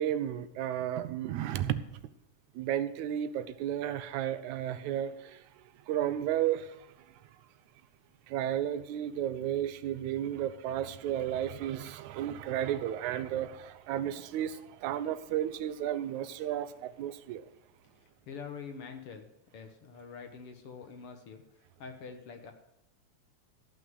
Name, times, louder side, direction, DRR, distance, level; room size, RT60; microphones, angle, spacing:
voice 1, 0.0-2.0 2.6-5.5 5.9-6.9 8.3-17.5, right 11 dB, 85° right, 13 dB, 2.1 m, -33 dB
voice 2, 18.3-19.3 19.5-21.4 21.8-22.5, left 5 dB, 60° left, 5 dB, 1.8 m, -45 dB
14.5 x 5.9 x 7.9 m, 0.84 s
omnidirectional pair, 3.3 m